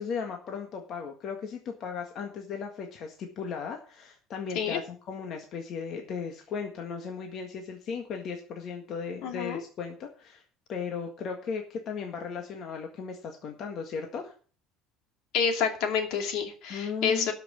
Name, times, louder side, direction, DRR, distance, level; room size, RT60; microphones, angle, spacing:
voice 1, 0.0-10.4 10.7-14.3 16.7-17.3, left 6 dB, 40° left, 3 dB, 1.7 m, -36 dB
voice 2, 9.2-9.6 15.3-17.3, left 6 dB, 60° left, 5 dB, 2.5 m, -28 dB
12.5 x 6.0 x 7.3 m, 0.41 s
cardioid pair, 150°, 0 cm